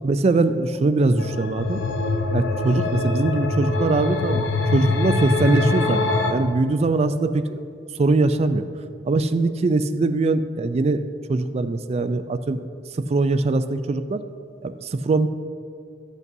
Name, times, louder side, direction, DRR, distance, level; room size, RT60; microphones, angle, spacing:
voice 1, 0.0-1.8 2.3-4.5 4.7-6.0 6.3-7.7 8.0-8.6 9.0-11.0 11.3-12.6 13.1-14.2 14.6-15.3, right 3 dB, 35° right, 11 dB, 0.3 m, -21 dB
sound 1, 1.2-6.3, left 3 dB, 80° left, 0.6 m, -23 dB
12.0 x 8.3 x 2.7 m, 2.2 s
head